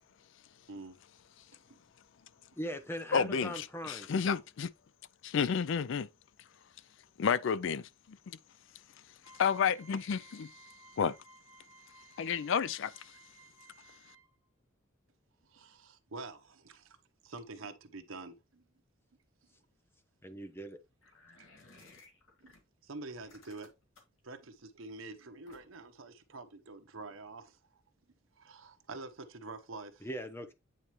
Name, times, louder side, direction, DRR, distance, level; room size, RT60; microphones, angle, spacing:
voice 1, 2.6-4.1 20.2-20.8 30.0-30.5, equal, 10° left, 0.8 m, -40 dB
voice 2, 3.1-4.7 5.2-6.1 7.2-8.4 9.4-10.5 11.0-11.1 12.2-12.9, left 6 dB, 65° left, 0.4 m, -31 dB
sound 1, 9.2-14.5, right 5 dB, 10° right, 1.6 m, -58 dB
voice 3, 15.4-17.0 17.2-18.7 20.2-20.4 21.4-21.5 22.4-22.5 22.8-23.7 24.2-27.8 28.4-30.1, right 3 dB, 85° right, 0.9 m, -47 dB
sound 2, 21.0-22.6 23.1-24.2 25.5-25.9, left 3 dB, 85° left, 2.1 m, -59 dB
9.0 x 4.2 x 3.1 m
head